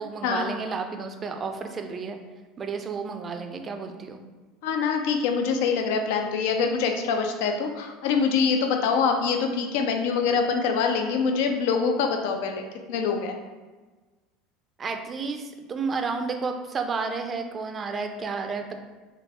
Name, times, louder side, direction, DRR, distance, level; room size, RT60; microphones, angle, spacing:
voice 1, 0.0-2.2 2.6-4.2 14.8-18.8, right 4 dB, 30° right, 5 dB, 0.5 m, -31 dB
voice 2, 4.6-13.4, left 5 dB, 60° left, 4 dB, 0.4 m, -25 dB
3.7 x 3.6 x 2.8 m, 1.3 s
figure-of-eight pair, 70°, 0 cm